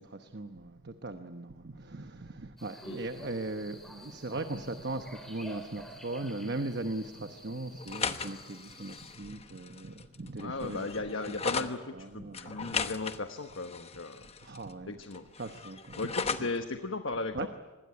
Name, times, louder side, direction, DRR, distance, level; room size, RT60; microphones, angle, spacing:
voice 1, 0.0-10.9 11.9-12.9 14.4-15.0 15.4-16.0 16.4-16.5 17.3-17.5, right 2 dB, 50° right, 8 dB, 1.0 m, -39 dB
sound 1, 2.6-9.2, equal, ahead, 3.5 m, -50 dB
sound 2, 7.8-11.7 12.3-14.7 15.0-16.6, left 5 dB, 30° left, 1.1 m, -37 dB
voice 2, 10.4-14.2 14.9-15.2 16.0-17.5, left 3 dB, 70° left, 7 dB, 1.2 m, -36 dB
26.0 x 20.5 x 9.6 m, 1.3 s
head